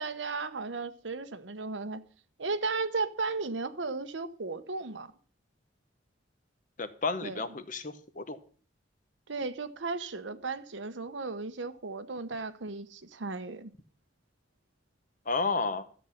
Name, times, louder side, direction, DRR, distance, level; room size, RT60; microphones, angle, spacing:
voice 1, 0.0-2.0 2.4-5.1 7.2-7.4 9.3-13.7, right 3 dB, 90° right, 1.0 m, -35 dB
voice 2, 6.8-8.4 15.3-15.8, left 4 dB, 45° left, 1.0 m, -32 dB
12.5 x 8.2 x 5.8 m
head